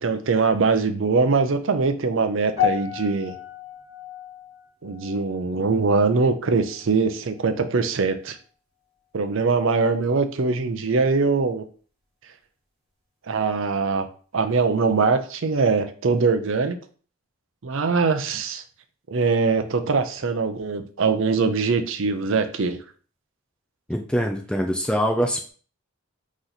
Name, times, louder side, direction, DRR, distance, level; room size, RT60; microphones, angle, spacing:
voice 1, 0.0-3.3 4.8-8.4 9.1-11.6 13.3-14.1 14.3-16.8 17.6-18.6 19.1-22.8, right 4 dB, 60° right, 7 dB, 0.5 m, -22 dB
sound 1, 2.6-7.0 7.2-7.6 8.3-8.4, left 9 dB, 15° right, 2.1 m, -32 dB
voice 2, 23.9-25.5, equal, 5° left, 3 dB, 0.3 m, -24 dB
4.0 x 3.0 x 4.0 m, 0.41 s
head